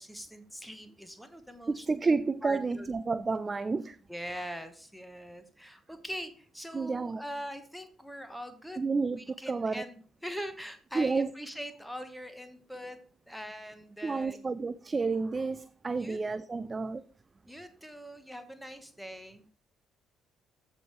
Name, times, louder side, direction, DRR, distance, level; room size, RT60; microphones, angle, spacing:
voice 1, 0.0-1.9 2.4-2.9 4.1-8.8 9.2-13.0 13.3-14.5 16.0-16.2 17.5-19.5, equal, ahead, 1.3 m, -42 dB
voice 2, 1.7-4.0 6.7-7.2 8.8-9.8 10.9-11.3 14.0-17.0, right 4 dB, 30° right, 0.4 m, -30 dB
14.5 x 5.5 x 3.2 m
figure-of-eight pair, 45°, 0 cm